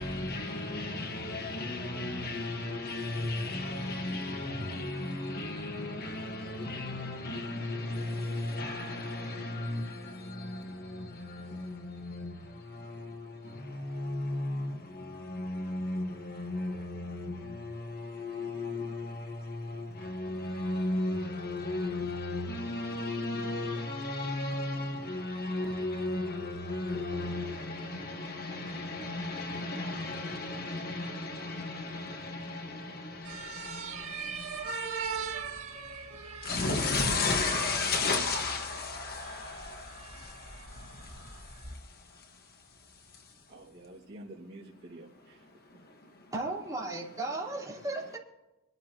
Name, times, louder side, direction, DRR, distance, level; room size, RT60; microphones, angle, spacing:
voice 1, 0.0-35.2 36.4-43.4 45.4-46.3, left 2 dB, 50° left, 1.6 m, -35 dB
sound 1, 33.2-41.7, right 5 dB, 85° right, 1.9 m, -41 dB
voice 2, 43.5-45.5, right 1 dB, 50° right, 2.5 m, -48 dB
voice 3, 46.3-48.2, right 2 dB, 20° right, 4.6 m, -35 dB
26.5 x 12.5 x 3.0 m
head